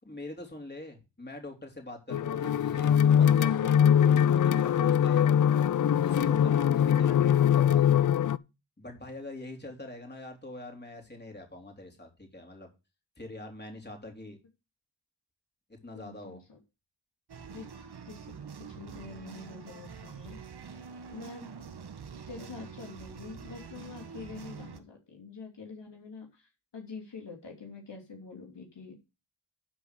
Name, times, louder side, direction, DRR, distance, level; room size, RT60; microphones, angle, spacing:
voice 1, 0.0-5.4 5.8-8.1 8.8-12.7 13.2-14.4 15.8-16.4, left 2 dB, 20° left, 3 dB, 3.6 m, -43 dB
sound 1, 2.1-8.4, left 9 dB, 45° left, 0.5 m, -22 dB
voice 2, 15.9-16.6 17.5-20.4 20.6-20.8 21.1-21.4 22.1-28.9, left 4 dB, 65° left, 1 dB, 2.9 m, -46 dB
sound 2, 17.3-24.8, right 6 dB, 60° right, 1.4 m, -45 dB
11.5 x 4.9 x 6.4 m, 0.28 s
cardioid pair, 50°, 45 cm